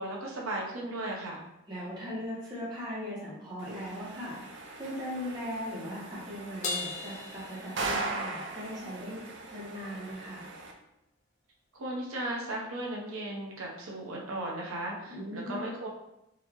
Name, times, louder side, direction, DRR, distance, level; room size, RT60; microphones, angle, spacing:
voice 1, 0.0-1.4 11.7-15.9, right 1 dB, 90° right, -2 dB, 0.8 m, -36 dB
voice 2, 1.7-4.5 4.8-9.2 9.5-10.5 15.1-15.6, equal, 20° right, -7 dB, 1.2 m, -39 dB
sound 1, 3.6-10.7, right 3 dB, 60° right, 0.5 m, -39 dB
Crash cymbal, 6.6-8.4, left 3 dB, 35° left, 0.4 m, -37 dB
4.0 x 2.7 x 2.9 m, 0.84 s
head